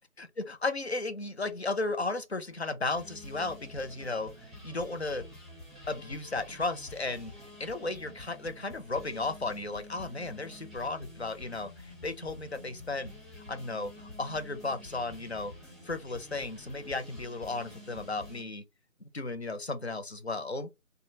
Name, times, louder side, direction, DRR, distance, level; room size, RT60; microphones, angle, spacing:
voice 1, 0.4-5.2 5.9-7.3 7.6-13.1 13.5-15.5 15.8-18.6 19.1-20.7, left 3 dB, 50° left, 0.5 m, -34 dB
sound 1, 2.9-18.4, left 1 dB, ahead, 0.6 m, -49 dB
3.6 x 2.1 x 2.7 m
figure-of-eight pair, 170°, 41 cm